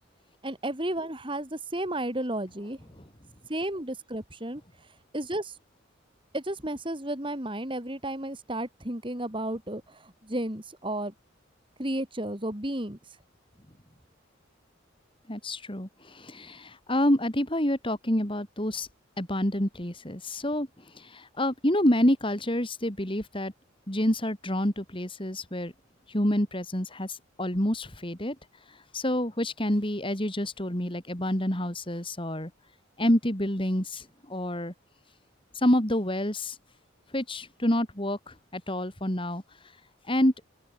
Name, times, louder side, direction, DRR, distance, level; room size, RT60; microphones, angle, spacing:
voice 1, 0.4-2.8 3.5-4.6 5.1-5.5 6.3-11.1 11.8-13.0, right 1 dB, 25° right, 3.4 m, -33 dB
voice 2, 15.3-18.9 19.2-23.5 23.9-25.7 26.1-28.4 28.9-32.5 33.0-34.7 35.5-36.6 37.1-39.4 40.1-40.3, left 1 dB, 25° left, 3.4 m, -28 dB
open air
head